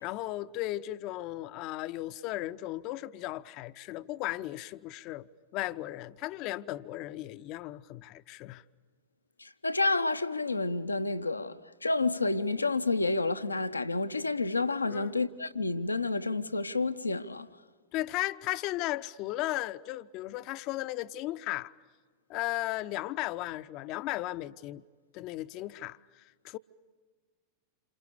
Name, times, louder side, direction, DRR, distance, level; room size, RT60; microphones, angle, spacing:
voice 1, 0.0-5.3 5.5-8.6 14.9-15.1 17.9-21.7 22.3-24.8 25.1-26.6, left 16 dB, 40° left, 0.7 m, -36 dB
voice 2, 9.4-17.5, left 3 dB, 80° left, 0.9 m, -30 dB
28.5 x 27.5 x 6.9 m
figure-of-eight pair, 90°, 0 cm